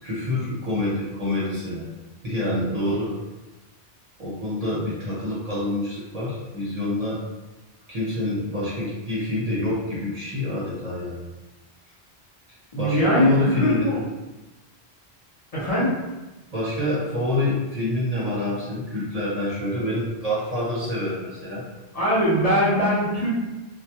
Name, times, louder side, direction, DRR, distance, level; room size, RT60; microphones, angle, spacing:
voice 1, 0.0-1.9 2.2-3.2 4.2-7.2 7.9-11.2 12.8-14.1 16.5-21.6, left 1 dB, 45° right, -8 dB, 0.7 m, -27 dB
voice 2, 12.7-14.0 15.5-15.9 21.9-23.4, equal, 45° left, -9 dB, 0.6 m, -21 dB
2.2 x 2.0 x 2.7 m, 1.1 s
omnidirectional pair, 1.1 m